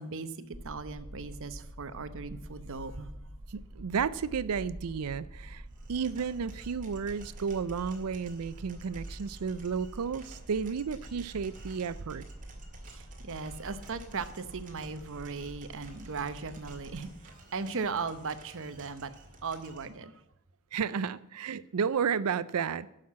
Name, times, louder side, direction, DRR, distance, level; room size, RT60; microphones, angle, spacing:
voice 1, 0.0-3.1 12.8-19.1 19.4-20.2, right 4 dB, 65° right, 12 dB, 0.9 m, -38 dB
sound 1, 0.5-17.0, right 1 dB, 15° right, 0.9 m, -47 dB
voice 2, 3.5-5.6 5.9-12.2 20.7-22.9, right 6 dB, 80° right, 17 dB, 0.5 m, -32 dB
sound 2, 5.7-19.9, right 2 dB, 35° right, 2.1 m, -53 dB
11.5 x 6.6 x 7.4 m, 0.87 s
head